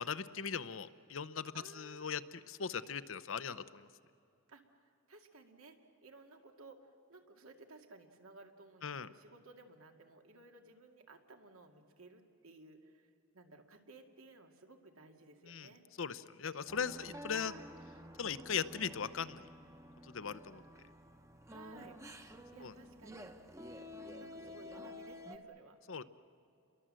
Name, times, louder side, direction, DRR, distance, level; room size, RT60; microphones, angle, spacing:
voice 1, 0.0-2.2 2.5-3.9 8.8-9.1 15.5-15.7 16.0-17.5 18.2-19.5 20.1-20.6 22.6-22.7 25.9-26.0, left 6 dB, 70° left, 14 dB, 0.8 m, -39 dB
voice 2, 1.5-2.1 4.5-4.8 5.1-15.9 16.9-17.3 20.2-20.4 21.5-22.0 22.5-23.3 24.2-25.8, right 3 dB, 85° right, 4 dB, 2.3 m, -57 dB
sound 1, 16.7-25.4, left 1 dB, 15° right, 1.0 m, -51 dB
29.5 x 22.5 x 7.6 m, 2.5 s
head